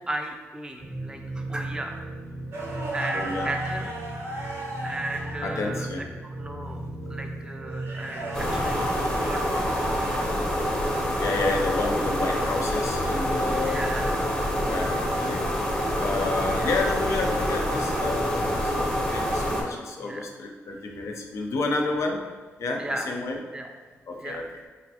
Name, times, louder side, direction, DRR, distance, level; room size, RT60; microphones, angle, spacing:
voice 1, 0.0-2.0 2.7-3.9 4.8-10.2 13.5-14.2 16.5-16.7 20.0-20.2 22.8-23.1 23.5-23.7 24.2-24.4, right 1 dB, 15° right, 2 dB, 0.4 m, -36 dB
sound 1, 0.8-8.9, right 2 dB, 80° right, 1.2 m, -36 dB
sound 2, 2.5-5.6 7.7-10.4 12.8-13.0 15.2-15.6 18.4-18.7 20.7-21.0, right 1 dB, 60° right, 0.6 m, -37 dB
voice 2, 3.1-3.5 5.4-6.0 6.6-6.8 11.2-13.9 14.7-15.4 16.0-22.2 22.6-23.4 24.1-24.4, left 3 dB, 70° left, 1 dB, 0.5 m, -30 dB
sound 3, 8.3-19.6, equal, 15° left, 0.7 m, -26 dB
3.2 x 2.5 x 2.7 m, 1.4 s
cardioid pair, 80°, 5 cm